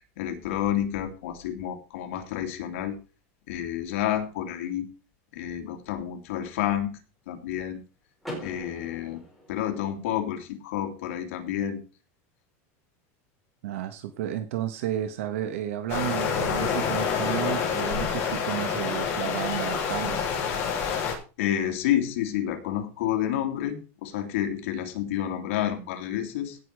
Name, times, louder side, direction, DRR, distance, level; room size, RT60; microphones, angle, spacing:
voice 1, 0.0-3.0 3.5-4.9 5.3-7.0 7.3-7.8 8.4-9.2 9.5-11.8 21.4-26.6, left 11 dB, 70° left, 4 dB, 3.1 m, -29 dB
Car / Door, 8.2-10.2, equal, ahead, 4.7 m, -41 dB
voice 2, 13.6-20.2, right 12 dB, 70° right, 8 dB, 1.4 m, -32 dB
sound 1, 15.9-21.1, left 6 dB, 30° left, 6.4 m, -27 dB
16.5 x 6.9 x 4.9 m, 0.34 s
supercardioid pair, 175°, 7 cm